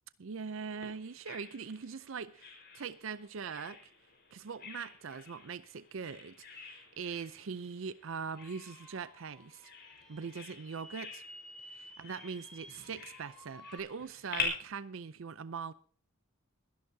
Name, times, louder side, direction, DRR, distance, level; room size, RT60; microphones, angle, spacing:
voice 1, 0.2-3.8 4.3-9.7 10.1-11.2 11.7-15.7, right 6 dB, 70° right, 0.5 m, -42 dB
Bird vocalization bird call bird song, 0.8-14.4, left 6 dB, 50° left, 4.6 m, -47 dB
sound 1, 8.2-13.8, left 1 dB, 5° left, 3.0 m, -54 dB
22.5 x 11.0 x 2.7 m
head